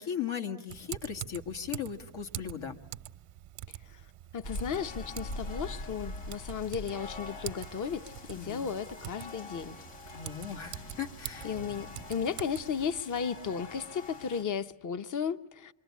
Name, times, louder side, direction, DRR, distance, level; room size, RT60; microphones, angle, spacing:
voice 1, 0.0-2.8 8.4-8.6 10.1-11.5, left 8 dB, 70° left, 1.7 m, -37 dB
Typing, 0.7-13.0, right 13 dB, 85° right, 0.9 m, -45 dB
voice 2, 4.3-9.8 11.4-15.7, left 7 dB, 40° left, 0.9 m, -34 dB
sound 1, 4.4-14.4, left 2 dB, 90° left, 5.6 m, -44 dB
27.5 x 23.0 x 8.3 m
cardioid pair, 120°, 50 cm